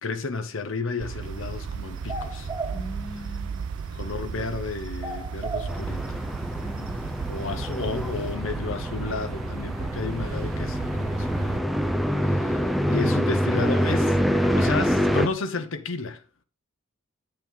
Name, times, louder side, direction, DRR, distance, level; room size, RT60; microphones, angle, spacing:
voice 1, 0.0-2.5 3.9-6.2 7.3-11.6 12.0-16.2, left 4 dB, 70° left, 0.9 m, -32 dB
sound 1, 1.0-11.6, right 6 dB, 80° right, 0.4 m, -35 dB
sound 2, 1.2-8.4, right 2 dB, 20° right, 1.8 m, -40 dB
voice 2, 2.7-3.7 6.6-7.3, equal, 20° left, 1.0 m, -41 dB
sound 3, 5.7-15.3, equal, ahead, 0.7 m, -26 dB
8.9 x 8.8 x 4.0 m
head